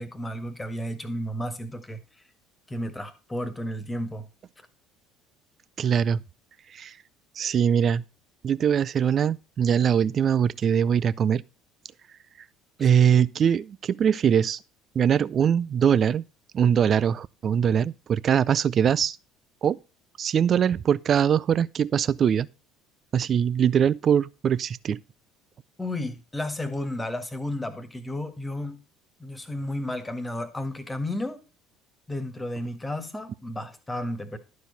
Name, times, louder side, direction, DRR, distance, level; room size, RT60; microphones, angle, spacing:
voice 1, 0.0-2.0 2.7-4.3 25.8-28.8 29.2-31.4 32.1-34.4, left 1 dB, 15° left, 1.7 m, -32 dB
voice 2, 5.8-6.2 6.7-6.9 7.4-8.0 8.4-11.4 12.8-14.6 15.0-16.2 16.5-19.2 19.6-19.8 20.2-22.5 23.1-25.0, right 8 dB, 45° right, 0.4 m, -22 dB
11.5 x 4.8 x 5.3 m
hypercardioid pair, 70°, 0 cm